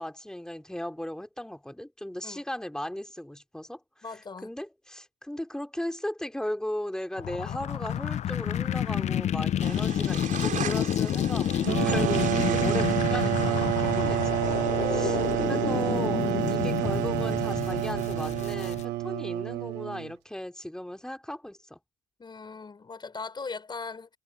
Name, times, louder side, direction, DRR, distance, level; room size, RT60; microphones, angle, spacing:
voice 1, 0.0-3.8 4.4-15.2 15.5-21.8, left 1 dB, 5° left, 3.8 m, -36 dB
voice 2, 4.0-4.5 14.8-15.3 22.2-24.1, left 4 dB, 25° left, 5.5 m, -38 dB
sound 1, 7.2-18.8, left 10 dB, 45° left, 0.4 m, -29 dB
sound 2, 9.6-18.7, right 9 dB, 50° right, 5.9 m, -40 dB
sound 3, 11.6-20.1, right 16 dB, 85° right, 1.2 m, -28 dB
cardioid pair, 110°, 17 cm